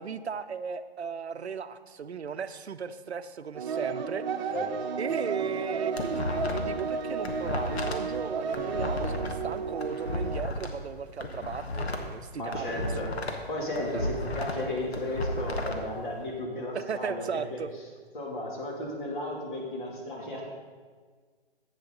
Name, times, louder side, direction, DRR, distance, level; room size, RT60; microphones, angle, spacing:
voice 1, 0.0-4.6 5.0-13.2 13.9-14.1 16.7-17.7, right 6 dB, 90° right, 12 dB, 0.6 m, -36 dB
sound 1, 3.5-10.4, right 5 dB, 45° right, 0.9 m, -33 dB
sound 2, 5.6-6.8 7.1-10.7 11.1-13.5 13.7-15.8, left 2 dB, 75° left, 1.4 m, -33 dB
voice 2, 12.4-13.1 13.5-17.6 18.1-20.4, left 1 dB, 50° left, -2 dB, 2.9 m, -34 dB
11.0 x 8.3 x 3.9 m, 1.5 s
hypercardioid pair, 140°, 32 cm